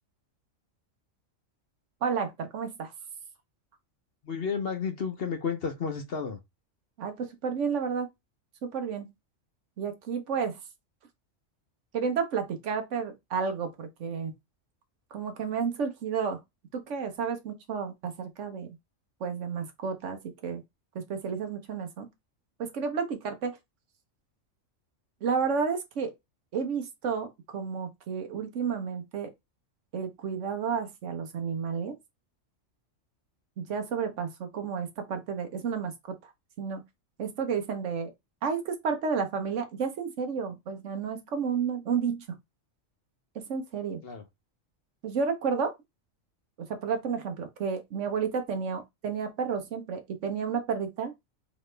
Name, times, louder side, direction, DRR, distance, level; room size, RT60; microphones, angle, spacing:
voice 1, 2.0-2.9 7.0-8.1 8.6-9.1 9.8-10.6 11.9-14.3 15.1-16.4 16.7-18.7 19.2-20.6 20.9-22.1 22.6-23.6 25.2-26.1 26.5-29.3 29.9-32.0 33.6-36.2 36.6-36.8 37.2-38.1 38.4-42.4 43.5-44.0 45.0-45.7 46.7-51.1, right 6 dB, 70° right, 1.1 m, -31 dB
voice 2, 4.2-6.4 44.0-44.2, left 6 dB, 55° left, 1.0 m, -32 dB
4.2 x 2.9 x 3.2 m
omnidirectional pair, 1.3 m